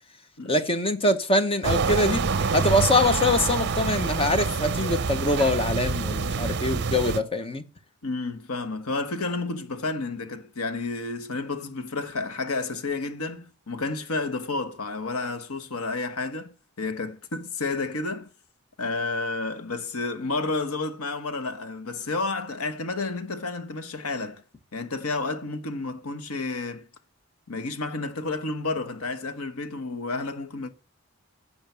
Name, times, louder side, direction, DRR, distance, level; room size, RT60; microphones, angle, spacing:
voice 1, 0.5-2.2 2.5-7.6, left 1 dB, 25° left, 0.9 m, -23 dB
sound 1, 1.6-7.2, right 4 dB, 50° right, 0.6 m, -26 dB
voice 2, 8.0-18.3 18.8-24.4 24.7-26.9 27.5-30.7, left 3 dB, 90° left, 1.2 m, -31 dB
10.5 x 7.3 x 6.9 m
head